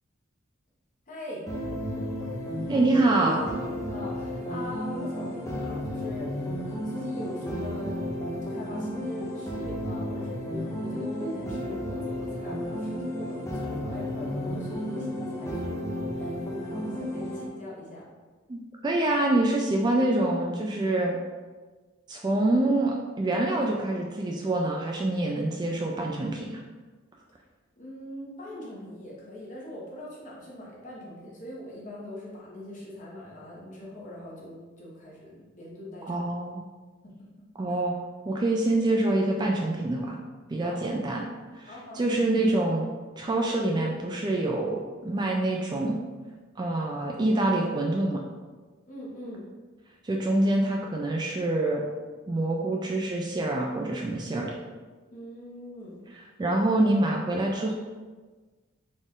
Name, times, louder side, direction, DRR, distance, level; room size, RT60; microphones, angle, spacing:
voice 1, 1.1-1.5 3.7-8.0 8.5-15.7 16.1-18.1 27.8-36.4 37.0-37.8 40.6-40.8 41.7-42.1 48.9-49.5 55.1-56.0, left 1 dB, 40° left, -5 dB, 1.1 m, -42 dB
sound 1, 1.5-17.5, equal, 15° left, 0.7 m, -33 dB
voice 2, 2.7-3.4 18.5-21.2 22.1-26.6 36.1-36.6 37.6-37.9 38.3-40.2 40.5-41.2 41.5-42.9 43.2-46.0 46.6-48.2 50.0-51.8 52.3-54.5 56.4-57.7, right 2 dB, 20° right, 0 dB, 0.3 m, -26 dB
4.0 x 2.5 x 3.6 m, 1.3 s
head